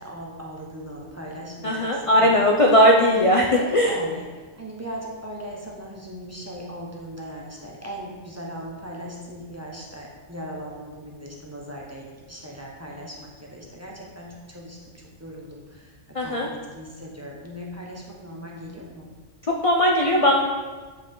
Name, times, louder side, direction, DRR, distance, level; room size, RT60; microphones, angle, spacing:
voice 1, 0.0-2.4 2.9-4.3 4.6-15.9 16.2-19.1, equal, 15° right, -3 dB, 1.0 m, -38 dB
voice 2, 1.6-3.9 16.1-16.5 19.5-20.4, equal, 40° left, 0 dB, 0.5 m, -18 dB
9.2 x 4.9 x 3.8 m, 1.4 s
omnidirectional pair, 1.3 m